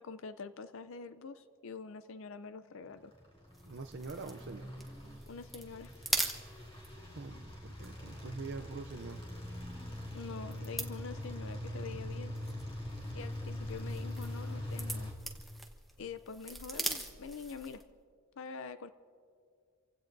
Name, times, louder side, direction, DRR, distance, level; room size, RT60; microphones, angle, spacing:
voice 1, 0.0-3.1 5.3-5.9 10.1-12.3 13.1-15.1 16.0-17.8 18.4-18.9, left 5 dB, 60° left, 0.5 m, -45 dB
sound 1, 3.1-15.1, left 1 dB, 25° left, 2.6 m, -43 dB
sound 2, 3.5-17.9, right 1 dB, ahead, 0.9 m, -43 dB
voice 2, 3.7-4.7 7.1-9.2, right 4 dB, 50° right, 0.5 m, -44 dB
29.5 x 16.0 x 2.6 m
head